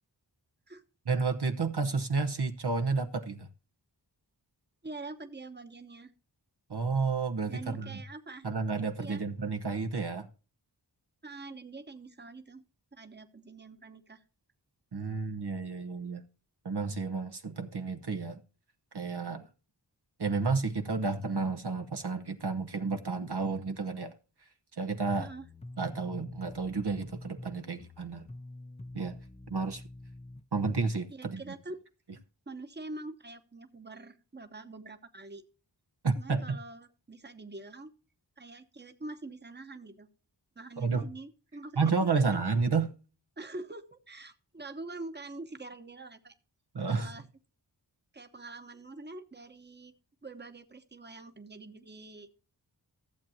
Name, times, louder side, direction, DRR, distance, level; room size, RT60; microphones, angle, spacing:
voice 1, 1.1-3.5 6.7-8.0 8.4-10.3 14.9-16.2 16.6-18.4 18.9-19.5 20.2-24.1 24.8-25.3 25.8-28.3 28.9-29.2 29.5-29.8 30.5-31.4 36.0-36.6 40.8-41.1 41.8-42.9 46.7-47.1, right 4 dB, 70° right, 1.0 m, -31 dB
voice 2, 4.8-6.1 7.5-8.5 9.0-9.2 11.2-12.6 12.9-14.2 25.2-25.5 31.1-31.8 32.5-35.4 36.2-37.9 38.4-40.1 40.5-42.4 43.4-46.3 46.9-47.2 48.1-49.9 50.2-52.3, right 2 dB, 25° right, 1.0 m, -45 dB
sound 1, 25.1-30.4, left 2 dB, 15° left, 0.5 m, -46 dB
14.5 x 7.6 x 2.8 m
wide cardioid pair, 45°, 42 cm